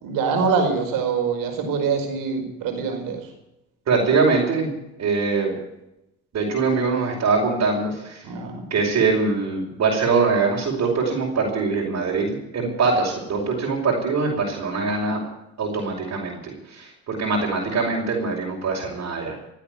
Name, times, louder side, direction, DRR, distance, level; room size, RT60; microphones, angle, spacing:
voice 1, 0.0-3.3 8.2-8.6, right 5 dB, 75° right, 4 dB, 5.2 m, -24 dB
voice 2, 3.9-4.7 5.0-5.6 6.3-8.2 8.7-15.2 15.6-19.4, right 4 dB, 50° right, -3 dB, 5.1 m, -23 dB
17.5 x 8.6 x 9.3 m, 0.87 s
supercardioid pair, 75°, 34 cm